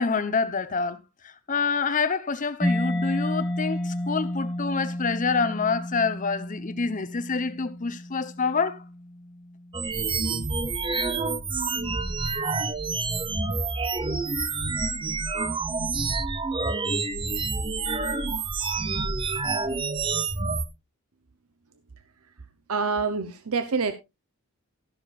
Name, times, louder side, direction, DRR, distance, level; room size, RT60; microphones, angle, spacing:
voice 1, 0.0-8.8, left 4 dB, 35° left, 0.9 m, -27 dB
Mallet percussion, 2.6-10.1, left 1 dB, ahead, 2.6 m, -31 dB
sound 1, 9.7-20.7, right 4 dB, 25° right, 0.7 m, -28 dB
voice 2, 22.7-23.9, right 4 dB, 75° right, 0.8 m, -26 dB
13.0 x 11.5 x 2.5 m
head